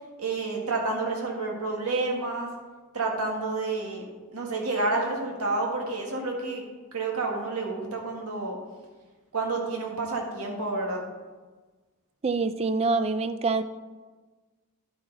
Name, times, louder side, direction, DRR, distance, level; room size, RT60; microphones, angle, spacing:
voice 1, 0.2-2.5 2.9-4.0 4.3-6.6 6.9-8.6 9.3-11.0, right 3 dB, 80° right, 0 dB, 1.7 m, -29 dB
voice 2, 12.2-13.6, right 4 dB, 30° right, 12 dB, 0.3 m, -25 dB
10.5 x 6.5 x 3.9 m, 1.3 s
head